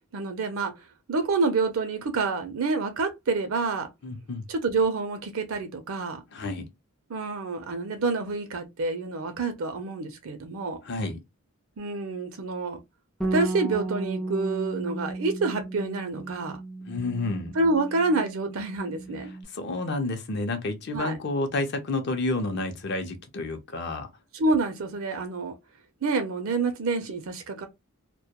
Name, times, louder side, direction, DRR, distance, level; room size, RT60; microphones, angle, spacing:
voice 1, 0.1-0.7 1.1-3.9 4.5-6.2 7.1-10.8 11.8-12.8 13.2-16.6 17.5-19.3 20.9-21.2 24.3-25.5 26.0-27.7, right 3 dB, 70° right, 0.5 m, -28 dB
voice 2, 4.0-4.4 6.3-6.7 10.8-11.2 16.9-17.5 19.5-24.1, left 2 dB, 50° left, 0.5 m, -30 dB
Bass guitar, 13.2-19.5, right 2 dB, ahead, 0.4 m, -34 dB
2.1 x 2.1 x 2.8 m
head